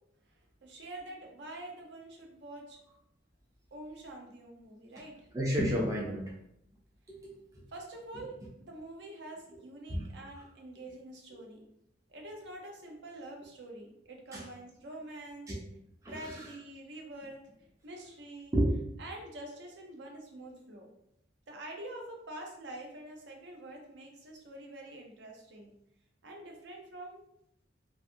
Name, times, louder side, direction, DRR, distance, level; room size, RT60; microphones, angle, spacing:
voice 1, 0.6-2.8 3.7-5.3 7.7-11.6 12.1-15.5 16.1-17.4 17.8-18.5 19.0-20.9 21.5-25.7 26.2-27.2, right 1 dB, 70° right, 1 dB, 0.5 m, -46 dB
voice 2, 5.3-6.2 7.1-7.6 9.9-10.0 11.3-11.4 14.3-14.5 15.5-15.6 16.0-16.5 18.5-18.7, equal, 15° right, -3 dB, 0.4 m, -31 dB
2.4 x 2.4 x 2.6 m, 0.77 s
head